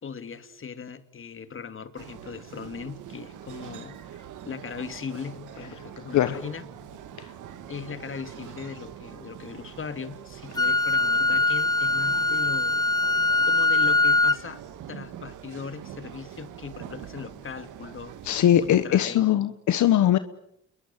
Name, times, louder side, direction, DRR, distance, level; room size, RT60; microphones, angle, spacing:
voice 1, 0.0-6.6 7.7-12.9 13.4-14.6 14.9-18.2 18.6-19.4, left 6 dB, 45° left, 10 dB, 2.6 m, -39 dB
sound 1, 2.0-18.9, right 10 dB, 80° right, 2.3 m, -44 dB
Wind instrument woodwind instrument, 10.6-14.4, left 3 dB, 15° left, 1.0 m, -22 dB
voice 2, 18.2-20.2, left 11 dB, 70° left, 12 dB, 1.3 m, -21 dB
28.5 x 22.5 x 9.2 m, 0.78 s
cardioid pair, 90°, 30 cm